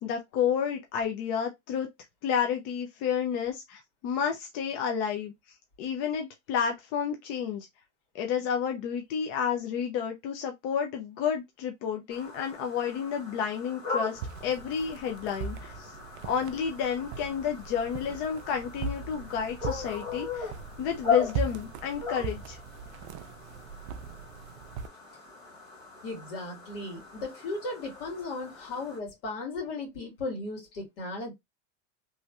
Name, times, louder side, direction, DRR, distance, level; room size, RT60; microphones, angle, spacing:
voice 1, 0.0-1.9 2.2-5.3 5.8-7.7 8.1-15.9 16.2-20.5 20.8-22.6, left 7 dB, 35° left, 0.4 m, -31 dB
sound 1, 12.1-29.0, left 5 dB, 15° left, 1.6 m, -38 dB
sound 2, 14.1-24.9, right 5 dB, 65° right, 0.5 m, -39 dB
voice 2, 26.0-31.3, left 2 dB, 65° left, 1.9 m, -36 dB
3.1 x 2.9 x 2.2 m
supercardioid pair, 170°, 37 cm